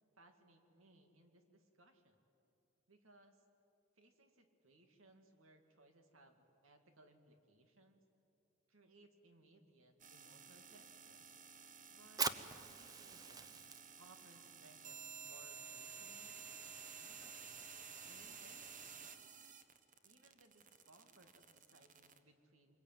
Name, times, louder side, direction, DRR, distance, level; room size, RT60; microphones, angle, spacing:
voice 1, 0.2-2.2 2.9-3.4 4.0-8.0 8.7-11.3 11.9-13.6 14.0-16.4 17.0-17.7 18.0-19.0 20.0-22.8, right 2 dB, 85° right, 5 dB, 2.4 m, -66 dB
sound 1, 10.0-22.2, right 6 dB, 40° right, 1.3 m, -53 dB
Fire, 12.0-19.3, right 5 dB, 20° right, 0.7 m, -48 dB
26.0 x 22.0 x 9.2 m, 2.9 s
head